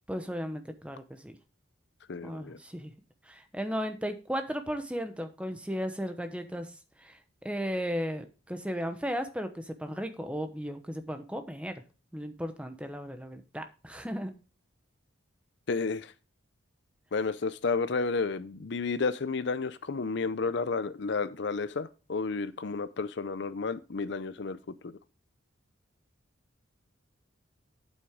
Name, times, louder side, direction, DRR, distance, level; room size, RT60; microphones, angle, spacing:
voice 1, 0.1-1.4 2.2-2.9 3.2-6.7 7.0-11.8 12.1-14.3, equal, 5° right, 7 dB, 0.9 m, -35 dB
voice 2, 2.1-2.6 15.7-16.1 17.1-24.9, left 4 dB, 60° left, 15 dB, 0.5 m, -31 dB
8.6 x 8.0 x 3.6 m, 0.33 s
head